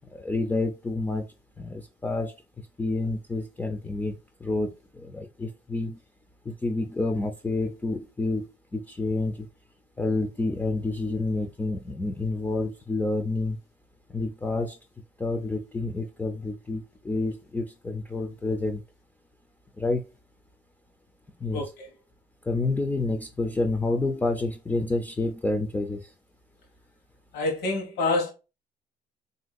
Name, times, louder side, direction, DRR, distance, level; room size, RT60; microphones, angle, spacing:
voice 1, 0.1-1.2 1.6-2.3 2.8-6.0 6.5-9.5 10.0-13.6 14.1-14.8 15.2-18.8 19.8-20.1 21.4-21.7 22.4-26.1, left 2 dB, 10° left, 0.4 m, -29 dB
voice 2, 21.5-21.9 27.3-28.3, left 2 dB, 80° left, 1.1 m, -27 dB
3.5 x 2.6 x 2.3 m
cardioid pair, 110°, 17 cm